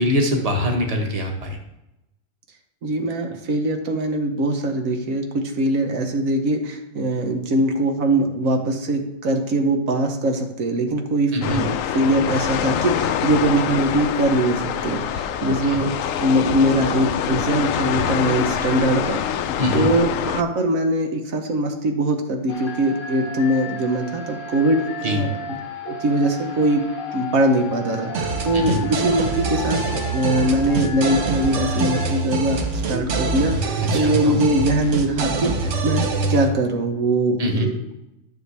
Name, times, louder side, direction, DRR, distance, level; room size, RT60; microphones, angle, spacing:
voice 1, 0.0-1.6 11.3-11.6 15.5-15.8 19.6-19.9 25.0-25.2 28.5-28.8 33.9-34.3 37.4-37.7, left 1 dB, 30° right, 1 dB, 1.4 m, -23 dB
voice 2, 2.8-15.9 16.2-19.2 19.7-25.5 25.8-26.8 27.1-38.0, right 1 dB, 85° right, 4 dB, 1.5 m, -22 dB
sound 1, 11.4-20.4, left 9 dB, 75° left, 0.9 m, -25 dB
sound 2, 22.5-32.1, left 2 dB, 45° left, 0.8 m, -34 dB
sound 3, 28.1-36.5, right 4 dB, 65° right, 1.3 m, -24 dB
12.5 x 6.6 x 3.4 m, 0.90 s
omnidirectional pair, 1.4 m